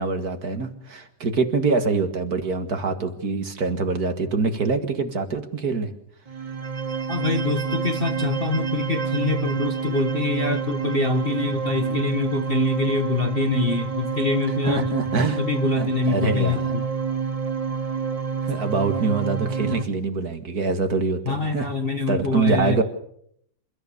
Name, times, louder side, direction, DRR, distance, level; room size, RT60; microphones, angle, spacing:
voice 1, 0.0-5.9 14.6-15.4 15.8-16.6 18.4-21.7 22.1-22.8, right 4 dB, 50° right, 7 dB, 2.1 m, -24 dB
sound 1, 6.3-19.8, right 6 dB, 25° right, 0.8 m, -28 dB
voice 2, 7.1-14.9 15.4-16.8 21.2-22.8, left 4 dB, 35° left, 6 dB, 1.3 m, -25 dB
28.0 x 13.5 x 7.0 m, 0.69 s
omnidirectional pair, 2.2 m